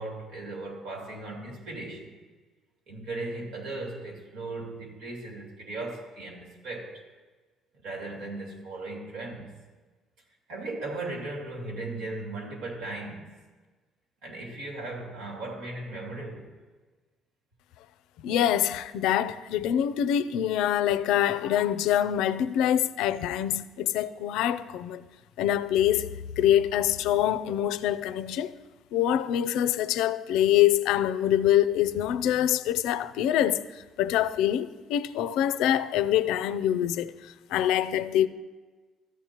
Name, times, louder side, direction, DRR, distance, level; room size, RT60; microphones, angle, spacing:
voice 1, 0.0-2.2 2.9-7.0 7.8-9.5 10.5-13.3 14.2-16.5, right 2 dB, 80° right, 2.3 m, -37 dB
voice 2, 18.2-25.0 25.4-28.5 28.9-33.7 34.0-38.3, left 11 dB, 90° left, 0.4 m, -25 dB
13.5 x 8.9 x 2.9 m
cardioid pair, 120°, 0 cm